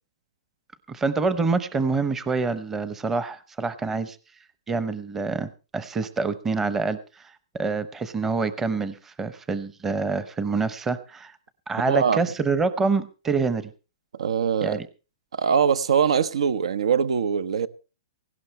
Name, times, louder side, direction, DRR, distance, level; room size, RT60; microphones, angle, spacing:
voice 1, 0.9-4.2 4.7-7.3 7.6-11.3 11.7-13.7 14.6-14.9, right 4 dB, 10° right, 0.8 m, -26 dB
voice 2, 11.8-12.2 14.1-14.8 15.3-17.7, right 7 dB, 80° right, 0.9 m, -22 dB
17.5 x 16.5 x 3.2 m
hypercardioid pair, 160°, 3 cm